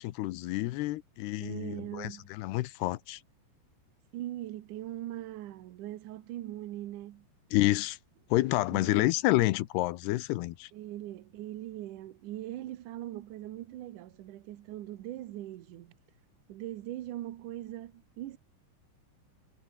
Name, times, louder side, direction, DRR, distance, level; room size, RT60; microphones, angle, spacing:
voice 1, 0.0-3.2 7.5-8.0 8.3-10.7, left 18 dB, 80° left, 2.8 m, -29 dB
voice 2, 1.4-2.3 4.1-7.3 8.7-9.1 10.7-16.0 16.5-18.4, right 14 dB, 65° right, 2.1 m, -41 dB
omnidirectional pair, 4.8 m